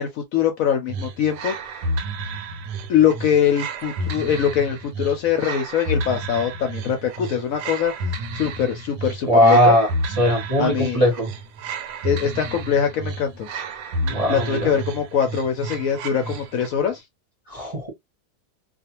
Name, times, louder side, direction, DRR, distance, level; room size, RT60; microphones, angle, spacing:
voice 1, 0.0-1.6 2.9-7.9 8.3-9.8 10.6-11.0 12.0-13.5 14.0-17.0, left 8 dB, 70° left, 0.9 m, -22 dB
sound 1, 0.9-16.8, right 1 dB, 85° right, 1.2 m, -31 dB
voice 2, 9.3-9.9 10.2-11.3 14.1-14.8 17.5-17.9, equal, 30° right, 0.7 m, -18 dB
2.4 x 2.4 x 2.9 m
omnidirectional pair, 1.7 m